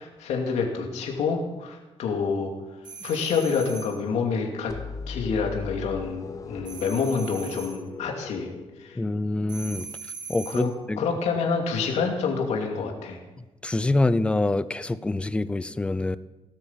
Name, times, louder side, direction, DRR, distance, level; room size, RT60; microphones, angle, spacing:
voice 1, 0.0-2.5 3.0-4.7 5.1-8.5 8.8-9.0 10.5-10.7 11.0-13.2, left 5 dB, 90° left, 1 dB, 2.6 m, -27 dB
sound 1, 2.8-4.0 6.6-7.8 9.5-10.7, right 5 dB, 40° right, 1.5 m, -40 dB
sound 2, 4.7-9.4, left 5 dB, 30° left, 0.9 m, -39 dB
voice 2, 9.0-9.9 10.3-11.0 13.6-16.2, left 2 dB, 10° left, 15 dB, 0.5 m, -25 dB
17.5 x 10.0 x 7.4 m, 1.1 s
cardioid pair, 165°, 11 cm